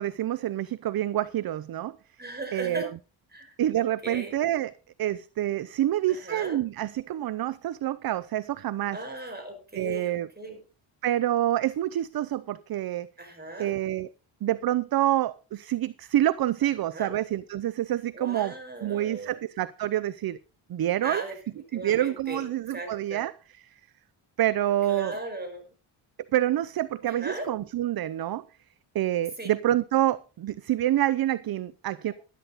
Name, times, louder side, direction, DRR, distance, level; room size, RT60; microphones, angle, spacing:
voice 1, 0.0-2.0 2.5-2.9 3.6-4.7 5.0-9.0 9.7-10.3 11.0-13.1 13.6-14.1 14.4-18.5 18.8-20.4 20.7-21.2 21.7-23.3 23.6-23.8 24.4-25.1 26.3-28.5 28.9-32.1, right 13 dB, 50° right, 0.5 m, -27 dB
voice 2, 2.2-2.9 3.3-3.6 4.0-4.3 6.1-6.6 8.9-10.6 13.2-13.7 16.9-17.1 18.1-19.4 21.0-22.4 22.7-23.2 24.9-25.6 27.0-27.5 29.4-29.5, right 1 dB, 20° right, 5.5 m, -37 dB
12.0 x 11.5 x 4.0 m
cardioid pair, 100°, 49 cm